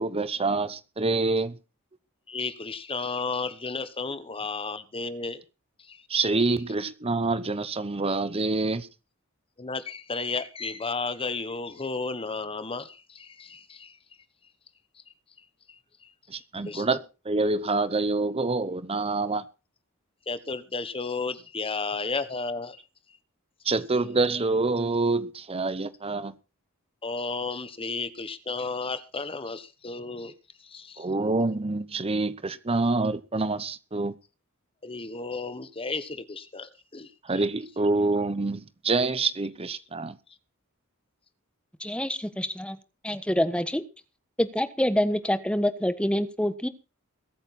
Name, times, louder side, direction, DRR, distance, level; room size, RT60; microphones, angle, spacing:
voice 1, 0.0-1.6 6.1-8.9 16.3-17.0 17.2-19.4 23.6-26.3 31.0-34.1 37.2-40.2, right 3 dB, 25° right, 0.9 m, -26 dB
voice 2, 2.3-5.4 5.8-6.0 9.6-14.0 15.7-16.1 16.6-16.9 20.3-22.8 27.0-30.3 30.6-31.1 34.8-37.4, left 4 dB, 25° left, 1.2 m, -33 dB
voice 3, 41.8-42.8 43.0-43.8 44.4-46.7, left 1 dB, 5° left, 1.2 m, -26 dB
21.5 x 9.0 x 4.2 m
head